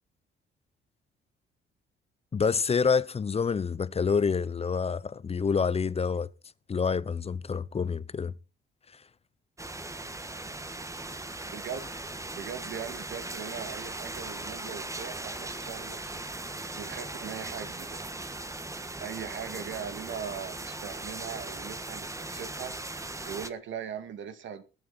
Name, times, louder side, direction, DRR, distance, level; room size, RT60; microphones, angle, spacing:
voice 1, 2.3-6.3 6.7-8.3, left 5 dB, 30° left, 0.7 m, -27 dB
sound 1, 9.6-23.5, right 2 dB, 15° right, 1.5 m, -39 dB
voice 2, 11.5-11.9 12.3-16.2 16.7-18.0 19.0-22.8 23.2-24.6, right 8 dB, 70° right, 2.5 m, -40 dB
21.5 x 8.1 x 4.3 m
cardioid pair, 90°, 20 cm